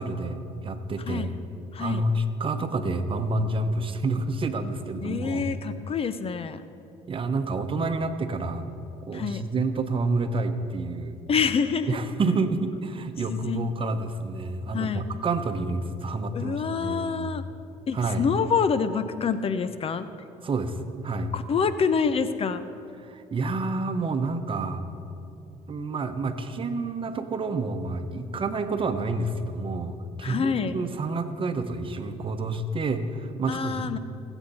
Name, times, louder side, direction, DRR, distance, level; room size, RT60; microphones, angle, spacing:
voice 1, 0.0-1.3 1.8-5.4 7.1-8.7 9.0-11.2 11.9-17.3 17.9-18.2 20.4-21.3 23.0-24.8 25.7-34.0, right 3 dB, 35° right, 8 dB, 1.0 m, -29 dB
voice 2, 1.7-2.0 5.0-6.6 9.1-9.4 11.3-11.9 13.3-13.7 14.7-15.0 16.3-17.4 17.9-20.1 21.3-22.6 30.2-30.8 33.5-34.0, left 6 dB, 40° left, 12 dB, 0.7 m, -26 dB
20.0 x 8.1 x 4.3 m, 2.6 s
supercardioid pair, 75°, 15 cm